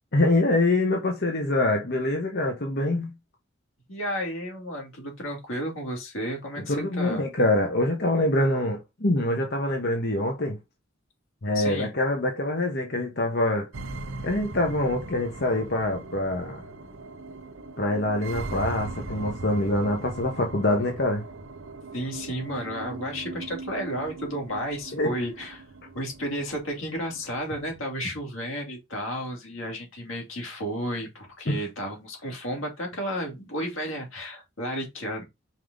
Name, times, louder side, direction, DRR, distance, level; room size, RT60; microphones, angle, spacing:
voice 1, 0.1-3.1 6.7-10.6 11.4-13.7 14.2-16.6 17.8-21.2 24.9-25.1, left 1 dB, 55° left, 1.3 m, -25 dB
voice 2, 3.9-7.2 11.5-11.9 21.9-25.6 25.9-35.2, equal, 90° left, 2.9 m, -32 dB
sound 1, 13.7-27.7, right 2 dB, 90° right, 0.9 m, -39 dB
5.4 x 4.7 x 3.9 m
head